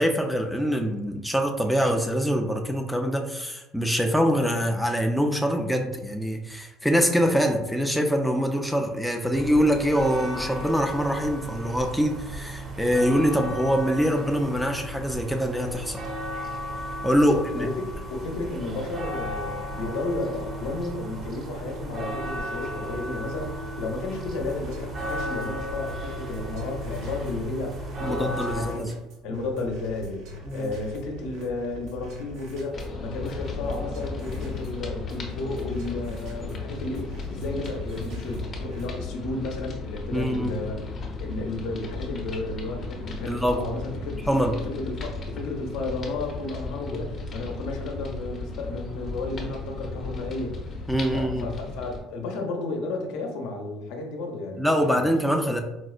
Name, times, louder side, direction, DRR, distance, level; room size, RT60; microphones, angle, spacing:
voice 1, 0.0-16.0 17.0-17.7 28.0-28.9 29.3-29.4 30.5-30.7 40.1-40.6 43.2-43.6 44.3-44.5 46.9-47.0 50.9-51.5 54.6-55.6, equal, ahead, 4 dB, 0.3 m, -24 dB
sound 1, 9.3-28.7, equal, 35° right, 0.6 m, -35 dB
voice 2, 17.3-28.8 29.2-44.3 44.6-55.0, left 2 dB, 80° left, 2 dB, 0.6 m, -33 dB
sound 2, 24.2-39.0, right 1 dB, 75° right, 0.6 m, -43 dB
sound 3, 32.7-52.0, left 3 dB, 35° left, 0.6 m, -35 dB
4.3 x 2.1 x 2.4 m, 0.95 s
cardioid pair, 115°, 0 cm